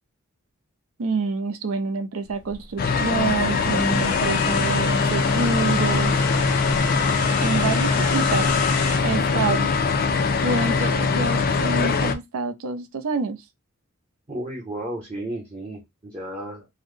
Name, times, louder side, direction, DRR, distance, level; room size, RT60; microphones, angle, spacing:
voice 1, 1.0-6.3 7.4-8.5 9.0-9.7 10.4-13.4, right 4 dB, 70° right, 0.5 m, -27 dB
sound 1, 2.3-9.0, left 4 dB, 75° left, 0.9 m, -32 dB
sound 2, 2.8-12.1, left 4 dB, 40° left, 0.4 m, -22 dB
voice 2, 14.3-16.7, right 1 dB, 25° right, 0.7 m, -33 dB
3.8 x 2.0 x 3.1 m
head